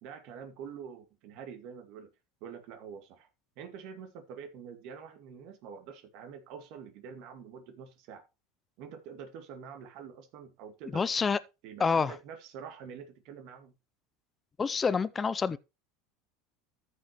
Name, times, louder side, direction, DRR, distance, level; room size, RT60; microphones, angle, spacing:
voice 1, 0.0-2.1 2.4-3.3 3.6-8.2 8.8-11.1 11.6-13.7, right 7 dB, 60° right, 2.1 m, -46 dB
voice 2, 10.9-11.4 11.8-12.2 14.6-15.6, left 5 dB, 20° left, 0.5 m, -27 dB
13.5 x 5.5 x 3.0 m
supercardioid pair, 120°, 0 cm